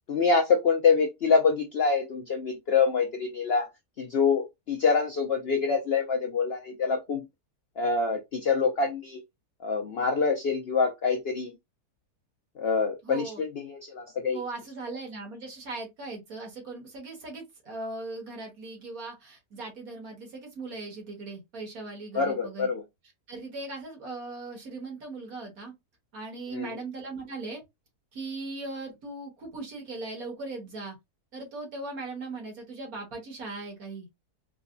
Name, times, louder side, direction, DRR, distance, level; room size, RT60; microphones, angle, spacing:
voice 1, 0.1-3.7 4.0-7.3 7.8-9.2 9.6-11.5 12.6-14.4 22.1-22.8 26.5-26.7, left 5 dB, 65° left, 0.6 m, -25 dB
voice 2, 13.0-13.4 14.3-22.7 23.3-25.7 26.1-27.6 28.1-31.0 31.3-34.1, right 3 dB, 65° right, 1.9 m, -39 dB
4.8 x 2.2 x 2.5 m
omnidirectional pair, 1.7 m